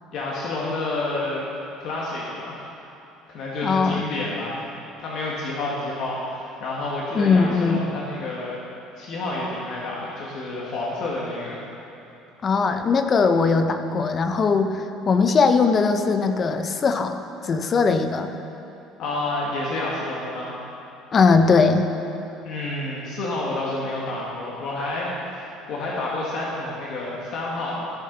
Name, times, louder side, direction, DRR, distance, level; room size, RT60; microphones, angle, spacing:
voice 1, 0.1-1.5 1.8-2.7 3.3-4.6 5.0-8.6 9.0-11.6 19.0-20.5 22.4-27.8, left 2 dB, 50° left, -5 dB, 1.5 m, -29 dB
voice 2, 3.6-4.0 7.1-7.9 12.4-18.3 21.1-21.9, left 4 dB, 25° left, 7 dB, 0.5 m, -20 dB
16.0 x 6.7 x 3.9 m, 2.9 s
cardioid pair, 175°, 0 cm